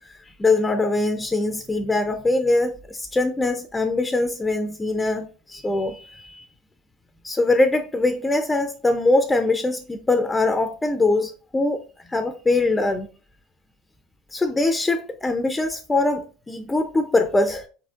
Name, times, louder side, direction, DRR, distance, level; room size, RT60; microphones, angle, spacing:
voice 1, 0.4-6.4 7.2-11.8 12.1-13.1 14.3-17.7, left 2 dB, 15° left, 0.5 m, -22 dB
4.2 x 4.2 x 2.4 m
supercardioid pair, 95°, 0 cm